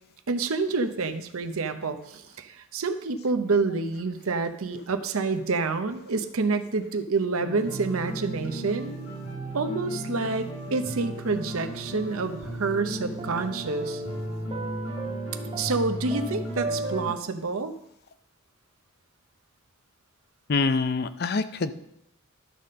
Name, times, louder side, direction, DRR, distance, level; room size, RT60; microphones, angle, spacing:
voice 1, 0.3-8.9 9.5-14.0 15.5-17.7, right 4 dB, 90° right, 9 dB, 0.8 m, -28 dB
sound 1, 7.4-17.1, right 1 dB, 80° left, 4.3 m, -35 dB
sound 2, 11.3-12.4 12.7-17.2, right 3 dB, 25° right, 0.4 m, -37 dB
voice 2, 20.5-21.7, left 4 dB, 50° left, 11 dB, 0.5 m, -25 dB
11.5 x 4.2 x 6.4 m, 0.78 s
head